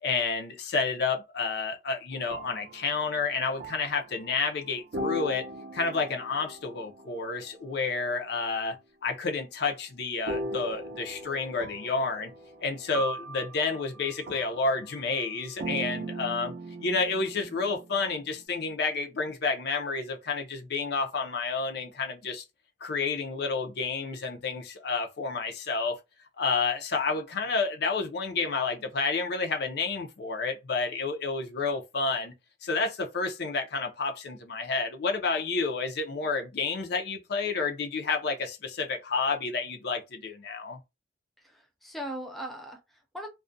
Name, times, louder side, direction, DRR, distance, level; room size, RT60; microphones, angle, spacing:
voice 1, 0.0-5.5 5.7-8.8 9.0-12.3 12.6-16.5 16.8-22.4 22.8-25.9 26.4-32.3 32.6-40.8, left 4 dB, 60° left, 0.5 m, -30 dB
sound 1, 2.1-4.6 4.9-8.1 10.3-18.4, right 1 dB, 50° right, 0.5 m, -39 dB
voice 2, 41.4-43.3, equal, ahead, 0.4 m, -39 dB
2.3 x 2.1 x 2.5 m
head